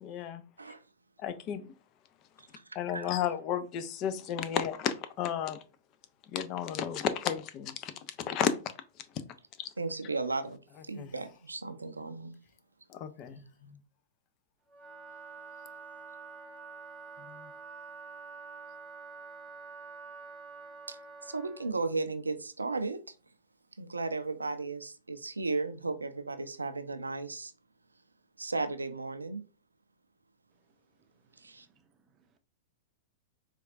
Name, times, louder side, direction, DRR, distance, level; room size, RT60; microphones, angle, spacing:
voice 1, 0.0-0.4 1.2-1.7 2.7-5.6 6.3-8.5 9.6-9.7 11.0-11.1 12.9-13.8 17.2-17.5, left 9 dB, 40° left, 0.4 m, -33 dB
voice 2, 9.8-10.6 10.8-12.3 20.9-23.2 23.8-27.5 28.4-29.5 31.4-31.7, right 3 dB, 85° right, 0.4 m, -35 dB
Wind instrument woodwind instrument, 14.7-21.7, right 4 dB, 5° right, 0.8 m, -47 dB
voice 3, 31.0-32.4, right 5 dB, 30° right, 0.5 m, -71 dB
4.3 x 2.3 x 2.4 m
figure-of-eight pair, 100°, 0 cm